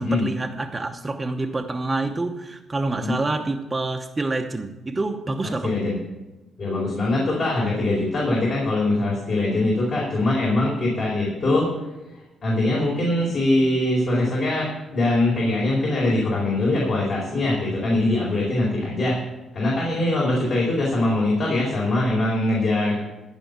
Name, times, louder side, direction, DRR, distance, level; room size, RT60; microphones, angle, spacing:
voice 1, 0.0-5.8, right 2 dB, 20° right, 3 dB, 0.9 m, -27 dB
voice 2, 5.6-6.0 6.6-11.7 12.1-19.2 19.5-23.0, left 2 dB, 55° left, -4 dB, 4.4 m, -22 dB
15.5 x 5.4 x 8.1 m, 1.1 s
cardioid pair, 90°, 0 cm